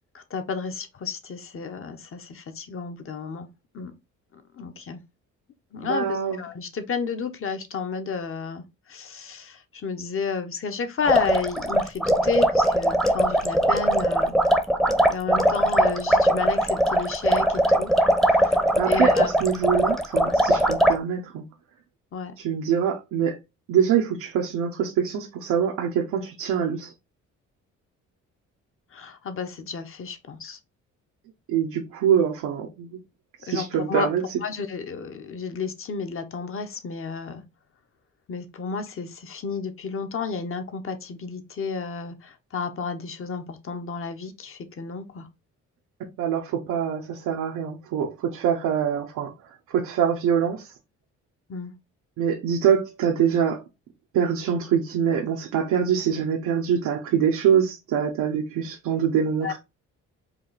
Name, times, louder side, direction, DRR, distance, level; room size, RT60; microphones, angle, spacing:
voice 1, 0.1-3.5 3.7-3.9 4.3-5.0 5.7-8.6 8.9-14.4 15.1-17.9 18.2-18.6 18.9-19.3 22.1-22.3 28.9-30.6 33.5-34.1 34.4-37.4 38.3-45.3 51.5-51.7 59.4-59.5, left 5 dB, 45° left, 1.0 m, -31 dB
voice 2, 5.8-6.4 18.8-21.4 22.4-23.4 23.7-26.9 31.5-33.0 33.4-34.4 46.2-49.3 49.7-50.7 52.2-53.6 54.1-59.6, right 8 dB, 90° right, 0.8 m, -24 dB
sound 1, 11.0-21.0, right 1 dB, ahead, 0.7 m, -21 dB
4.7 x 2.5 x 3.9 m
cardioid pair, 90°, 30 cm